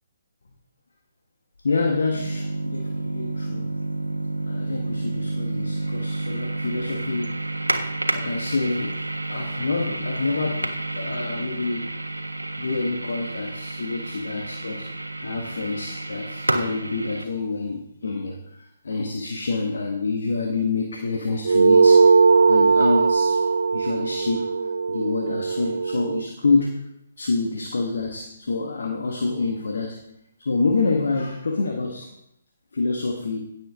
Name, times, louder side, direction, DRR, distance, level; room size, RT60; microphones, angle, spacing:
voice 1, 1.6-3.7 4.5-7.4 8.1-9.0 9.3-11.9 12.6-14.9 15.2-22.1 22.5-23.4 23.7-24.5 24.9-26.8 27.2-30.0 30.4-32.1 32.7-33.5, left 3 dB, 60° left, 2 dB, 1.6 m, -27 dB
sound 1, 2.1-17.2, right 2 dB, 85° right, 1.4 m, -30 dB
sound 2, 21.4-26.3, right 4 dB, 65° right, 0.4 m, -18 dB
16.5 x 8.0 x 3.7 m, 0.81 s
figure-of-eight pair, 135°, 0 cm